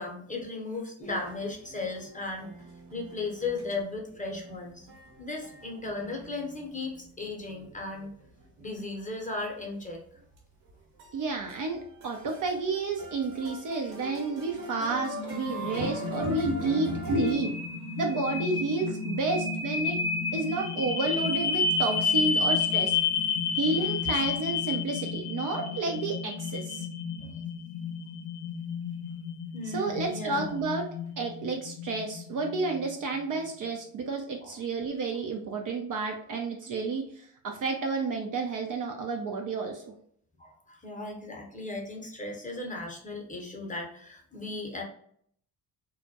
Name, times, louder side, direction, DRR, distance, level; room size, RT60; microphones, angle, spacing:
voice 1, 0.0-2.5 2.9-4.9 5.2-8.1 8.6-10.0 13.8-13.9 15.7-15.8 23.8-23.9 27.2-27.4 29.5-30.5 34.4-34.6 40.4-44.8, left 3 dB, 15° left, 0 dB, 0.8 m, -36 dB
sound 1, 1.0-8.7 9.2-9.3 9.6-9.7 9.9-10.0 10.4-10.7 11.0-17.3, equal, 70° right, 1.0 m, -38 dB
voice 2, 11.1-17.5 18.0-20.0 20.3-23.0 23.6-26.9 29.7-30.9 31.2-39.9, right 3 dB, 45° right, 2 dB, 0.5 m, -31 dB
sound 2, 14.8-32.8, left 5 dB, 75° left, 0.6 m, -31 dB
2.2 x 2.1 x 2.7 m, 0.63 s
hypercardioid pair, 55°, 48 cm